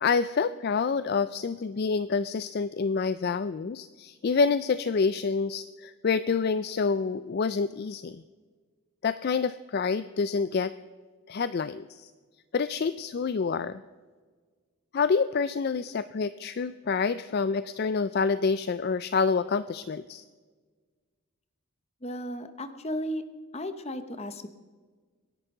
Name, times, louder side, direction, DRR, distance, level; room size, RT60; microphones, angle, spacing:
voice 1, 0.0-8.2 9.0-10.7 11.3-12.1 12.5-13.8 14.9-20.2, left 5 dB, 45° left, 14 dB, 0.3 m, -27 dB
voice 2, 22.0-23.2 23.5-24.5, equal, 30° left, 10 dB, 0.9 m, -34 dB
25.0 x 11.0 x 3.8 m, 1.5 s
head